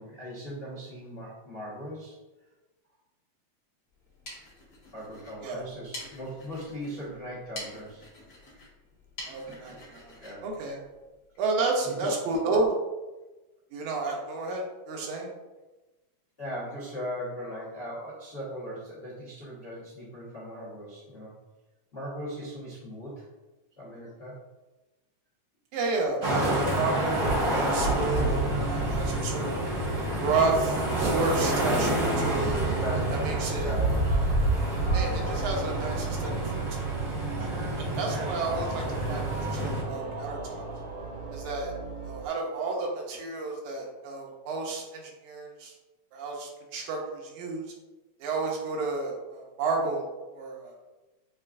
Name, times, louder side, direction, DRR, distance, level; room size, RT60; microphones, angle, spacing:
voice 1, 0.0-2.2 4.9-8.0 9.5-9.8 10.2-10.4 11.8-12.1 16.4-21.3 21.9-23.2 23.8-24.4 31.4-31.7 32.8-34.2 38.1-38.3, equal, 75° left, -7 dB, 0.5 m, -39 dB
sound 1, 3.9-11.4, left 1 dB, 45° left, 1.3 m, -47 dB
voice 2, 9.3-10.2 10.4-10.8 11.4-12.8 13.7-15.3 25.7-29.6 30.2-32.6 33.2-33.7 34.9-36.4 37.4-37.5 37.9-40.7 41.3-41.7 42.0-45.7 46.1-47.6 48.2-50.8, right 3 dB, 85° right, 0 dB, 2.2 m, -31 dB
sound 2, 26.2-39.8, right 1 dB, 50° right, 1.1 m, -28 dB
sound 3, 29.5-42.3, right 5 dB, 65° right, 1.4 m, -37 dB
6.6 x 2.4 x 2.5 m, 1.1 s
omnidirectional pair, 3.3 m